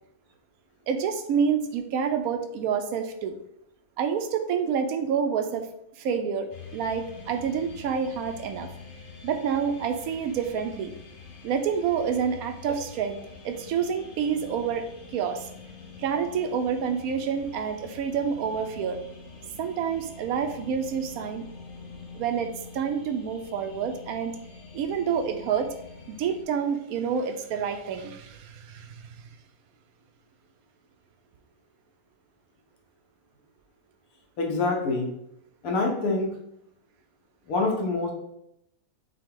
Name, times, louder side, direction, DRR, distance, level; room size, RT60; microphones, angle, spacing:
voice 1, 0.9-3.3 4.0-5.7 6.0-8.7 9.2-10.9 11.4-13.2 13.4-14.8 15.1-15.5 16.0-19.0 19.6-21.4 22.1-22.5 22.7-24.3 24.7-25.7 26.1-29.2, right 7 dB, 85° right, 7 dB, 1.0 m, -28 dB
sound 1, 6.5-26.4, left 4 dB, 45° left, 0.9 m, -45 dB
voice 2, 34.4-35.1 35.6-36.3 37.5-38.1, left 3 dB, 75° left, 0 dB, 1.4 m, -25 dB
5.6 x 2.2 x 3.7 m, 0.78 s
omnidirectional pair, 1.5 m